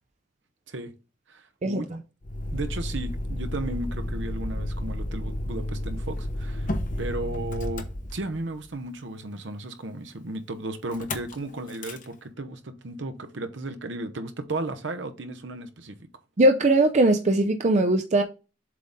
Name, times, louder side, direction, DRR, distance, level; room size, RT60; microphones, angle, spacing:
voice 1, 1.3-1.9 2.5-6.7 7.0-7.8 8.1-16.1, right 2 dB, 70° right, 0.9 m, -34 dB
Motor vehicle (road), 2.2-8.6 10.9-11.3 11.7-12.0, left 1 dB, 45° left, 0.9 m, -32 dB
voice 2, 16.4-18.2, right 1 dB, 35° right, 0.5 m, -20 dB
7.5 x 4.0 x 3.6 m
head